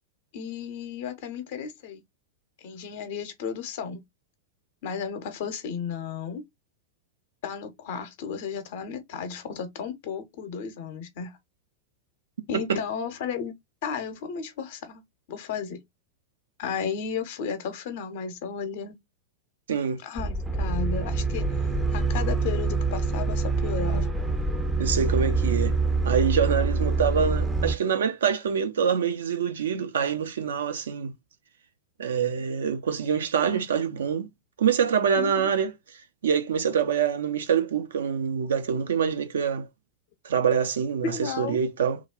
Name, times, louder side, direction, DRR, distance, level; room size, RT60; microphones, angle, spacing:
voice 1, 0.3-2.0 2.6-4.0 4.8-6.4 7.4-11.4 12.5-13.5 13.8-15.0 15.3-15.8 16.6-19.0 20.0-24.1 35.1-35.5 41.0-41.6, left 6 dB, 50° left, 0.7 m, -34 dB
voice 2, 19.7-20.0 24.8-25.8 26.0-31.1 32.0-34.3 34.6-35.7 36.2-39.7 40.2-42.0, right 7 dB, 65° right, 0.5 m, -25 dB
sound 1, 20.2-27.8, right 3 dB, 10° right, 0.5 m, -25 dB
3.1 x 2.3 x 3.7 m
figure-of-eight pair, 90°, 0 cm